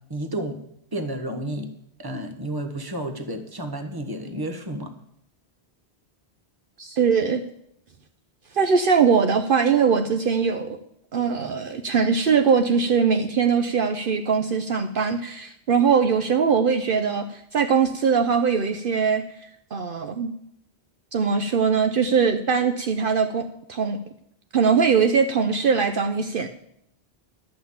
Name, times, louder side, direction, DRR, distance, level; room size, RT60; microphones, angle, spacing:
voice 1, 0.1-0.6 0.9-1.7 2.0-4.9, right 1 dB, 20° right, 6 dB, 1.2 m, -31 dB
voice 2, 6.8-7.4 8.5-10.8 11.1-19.2 19.7-20.3 21.1-24.0 24.5-26.5, right 6 dB, 60° right, 6 dB, 0.9 m, -21 dB
12.0 x 5.8 x 8.5 m, 0.74 s
omnidirectional pair, 1.0 m